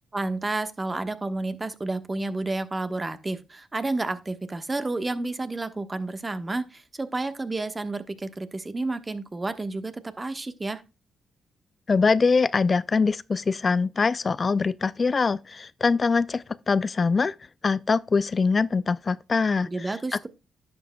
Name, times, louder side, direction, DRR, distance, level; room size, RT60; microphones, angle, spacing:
voice 1, 0.1-10.8 19.6-20.3, right 2 dB, 30° right, 1.2 m, -30 dB
voice 2, 11.9-17.3 17.6-19.9, left 4 dB, 45° left, 0.4 m, -23 dB
11.0 x 7.4 x 2.2 m
supercardioid pair, 55°, 0 cm